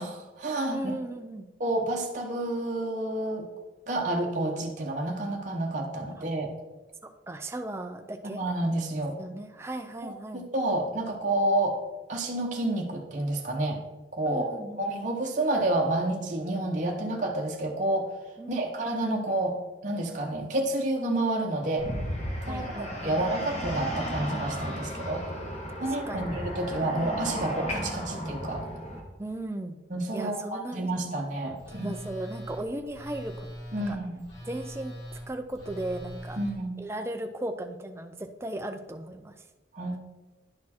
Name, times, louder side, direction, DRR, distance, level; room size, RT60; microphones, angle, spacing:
voice 1, 0.0-0.8 1.6-3.5 3.9-6.5 8.3-9.2 10.0-11.8 12.1-13.8 14.1-18.1 18.5-19.6 19.8-21.9 22.4-25.2 25.8-28.7 29.9-31.9 33.7-34.2 36.4-36.8 39.7-40.0, right 1 dB, 40° right, -1 dB, 0.8 m, -29 dB
voice 2, 0.7-1.5 7.3-8.4 9.2-10.4 14.2-14.9 18.4-18.6 22.5-23.2 25.8-26.4 29.2-29.8 30.1-30.9 31.7-33.5 33.7-34.0 34.4-34.9 35.3-36.4 36.8-39.4, right 1 dB, 15° right, 6 dB, 0.4 m, -36 dB
sound 1, 21.8-29.0, equal, 35° left, 1.6 m, -34 dB
Telephone, 31.5-36.5, equal, 65° left, 2.9 m, -42 dB
10.5 x 4.3 x 4.3 m, 1.2 s
head